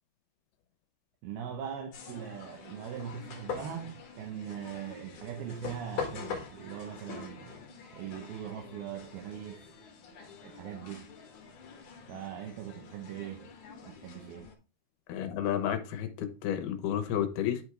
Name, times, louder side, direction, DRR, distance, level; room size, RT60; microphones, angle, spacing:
voice 1, 1.2-7.6 7.9-9.7 10.4-11.1 12.1-13.5 13.8-14.5, right 8 dB, 80° right, 2.9 m, -41 dB
sound 1, 1.9-14.5, left 5 dB, 60° left, 2.9 m, -44 dB
voice 2, 15.1-17.6, left 10 dB, 85° left, 3.0 m, -31 dB
10.5 x 4.7 x 3.3 m
omnidirectional pair, 4.4 m